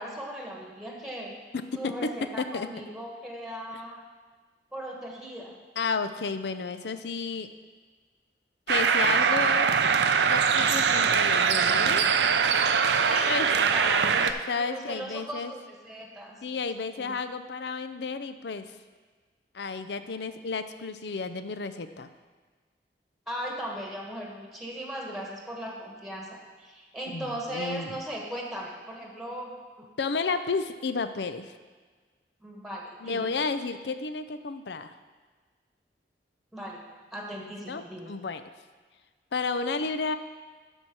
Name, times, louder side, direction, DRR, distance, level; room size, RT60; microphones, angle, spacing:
voice 1, 0.0-1.3 1.7-4.0 4.7-5.5 13.0-14.3 14.6-16.4 16.8-17.2 23.3-29.5 32.4-33.2 36.5-36.8 37.1-38.1, right 1 dB, ahead, -1 dB, 1.5 m, -38 dB
voice 2, 1.5-2.7 5.8-7.5 8.7-9.7 10.3-12.1 13.3-13.5 14.2-15.5 16.4-18.7 19.5-22.1 27.1-28.0 30.0-31.5 33.0-34.9 37.4-38.4 39.3-40.1, left 4 dB, 70° left, 11 dB, 0.5 m, -32 dB
sound 1, 8.7-14.3, right 6 dB, 70° right, 0.5 m, -22 dB
12.0 x 4.5 x 6.1 m, 1.4 s
head